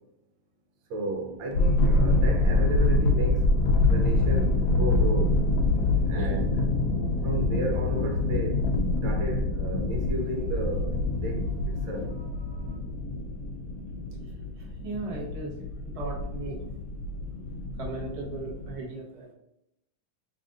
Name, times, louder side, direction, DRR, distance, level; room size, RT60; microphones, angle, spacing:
voice 1, 0.9-3.5 3.9-5.4 6.1-6.7 7.2-8.7 9.0-12.1, right 2 dB, 80° right, 1.4 m, -33 dB
sound 1, 1.5-18.7, left 2 dB, 80° left, 0.8 m, -26 dB
sound 2, 3.7-12.8, equal, 60° right, 0.8 m, -44 dB
voice 2, 6.1-6.4 14.8-15.5 15.9-16.6 17.8-19.3, right 2 dB, 45° right, 0.4 m, -36 dB
3.4 x 2.5 x 3.7 m
omnidirectional pair, 2.1 m